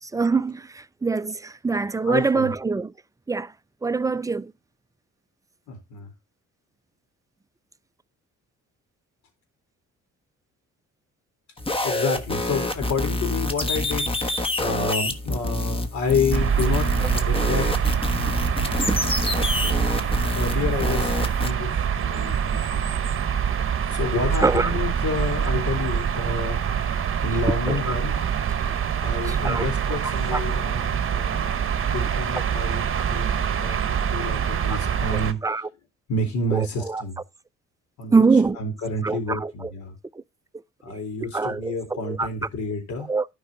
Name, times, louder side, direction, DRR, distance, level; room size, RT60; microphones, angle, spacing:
voice 1, 0.1-2.9 3.3-3.5 3.8-4.5 18.7-19.0 24.4-24.7 27.7-28.0 29.3-29.7 30.3-30.4 34.7-34.8 35.1-35.7 36.5-36.6 36.9-37.0 38.1-38.6 39.0-39.7 41.3-42.3 43.1-43.3, right 4 dB, 10° right, 0.4 m, -24 dB
voice 2, 2.1-2.5 5.7-6.1 11.8-17.7 18.7-22.9 23.9-26.7 27.2-28.4 29.0-31.6 31.9-33.3 33.6-35.7 36.1-37.2 38.0-38.2 38.5-40.0 40.8-43.1, left 3 dB, 70° left, 4.0 m, -29 dB
sound 1, 11.6-21.5, left 1 dB, 20° left, 1.3 m, -27 dB
sound 2, 16.3-35.3, right 8 dB, 45° right, 1.0 m, -25 dB
12.0 x 5.4 x 3.8 m
cardioid pair, 90°, 30 cm